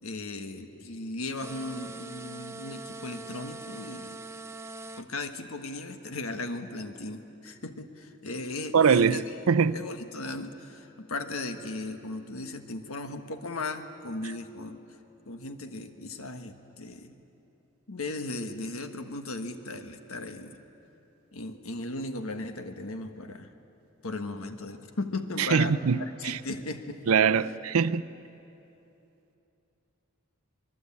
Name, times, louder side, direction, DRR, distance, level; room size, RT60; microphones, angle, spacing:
voice 1, 0.0-4.2 5.0-14.8 15.3-17.2 17.9-20.6 21.3-23.5 24.0-27.2, left 2 dB, 85° left, 1.4 m, -37 dB
sound 1, 1.3-5.1, right 2 dB, 15° right, 0.6 m, -42 dB
voice 2, 8.7-9.7 25.4-26.0 26.2-26.4 27.1-28.0, right 6 dB, 90° right, 0.5 m, -22 dB
25.0 x 22.0 x 8.5 m
head